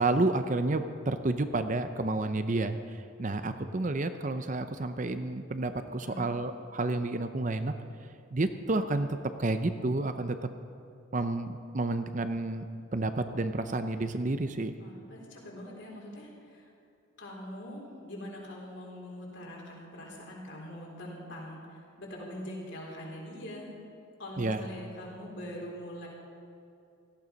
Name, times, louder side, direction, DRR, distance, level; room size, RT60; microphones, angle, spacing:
voice 1, 0.0-2.8 3.2-7.7 8.3-9.1 9.4-10.5 11.1-12.6 12.9-14.7 24.4-24.7, right 2 dB, 35° right, 9 dB, 0.6 m, -30 dB
voice 2, 6.0-6.3 14.8-16.7 17.1-23.7 24.2-26.1, equal, 55° left, -3 dB, 3.9 m, -43 dB
17.5 x 14.0 x 5.2 m, 2.5 s
head